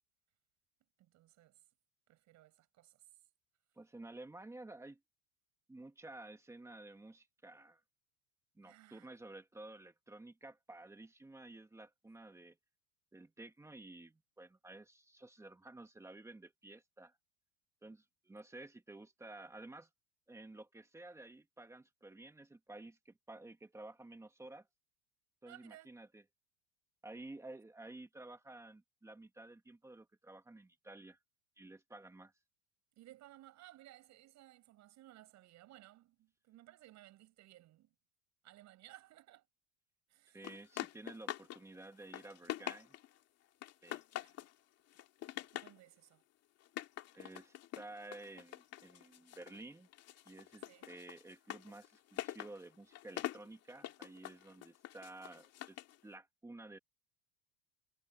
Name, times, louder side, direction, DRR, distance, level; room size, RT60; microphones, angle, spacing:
voice 1, 1.0-1.6 2.1-3.0 8.6-9.1 25.5-25.9 33.0-37.9 38.4-39.5 40.1-40.7 44.2-44.4 45.3-46.2 50.6-50.9, right 15 dB, 40° right, 7.2 m, -59 dB
voice 2, 3.8-5.0 5.7-7.8 8.6-12.6 13.1-17.2 17.8-19.9 20.3-24.7 25.4-26.2 27.0-31.2 31.6-32.3 40.3-43.0 43.8-44.0 47.1-49.9 50.3-56.8, right 2 dB, 5° right, 1.8 m, -53 dB
sound 1, 40.4-41.6 41.9-43.2 43.6-44.5 44.9-45.8 46.6-49.6 49.9-56.0, left 13 dB, 35° left, 2.6 m, -45 dB
cardioid pair, 155°, 41 cm